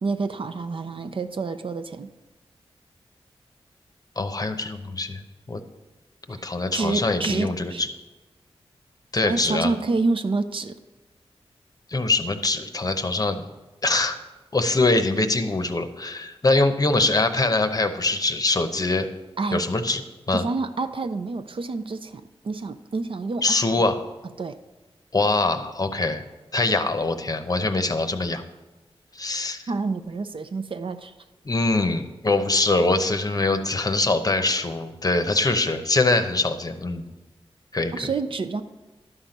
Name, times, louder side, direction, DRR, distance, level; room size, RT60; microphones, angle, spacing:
voice 1, 0.0-2.1 6.3-7.8 9.2-10.8 19.4-19.6 20.3-23.9 24.4-24.6 29.7-31.1 37.9-38.6, right 3 dB, 55° right, 9 dB, 0.5 m, -28 dB
voice 2, 4.2-5.2 5.5-5.6 6.3-7.9 9.1-9.7 11.9-13.5 13.8-14.2 14.5-19.1 19.5-20.0 20.3-20.4 23.4-24.0 25.1-26.2 26.5-28.4 29.1-29.6 31.5-37.1 37.7-38.1, left 2 dB, 35° left, 8 dB, 0.7 m, -23 dB
11.5 x 5.8 x 5.2 m, 1.1 s
wide cardioid pair, 75°, 10 cm